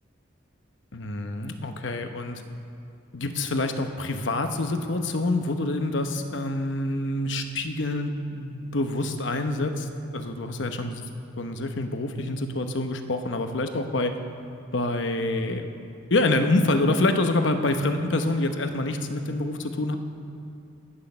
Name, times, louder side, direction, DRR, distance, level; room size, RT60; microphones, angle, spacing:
voice 1, 0.9-2.4 3.1-9.9 10.1-11.0 11.4-14.2 14.7-15.7 16.1-20.0, left 2 dB, 70° left, 7 dB, 0.9 m, -26 dB
18.5 x 6.4 x 6.9 m, 2.5 s
head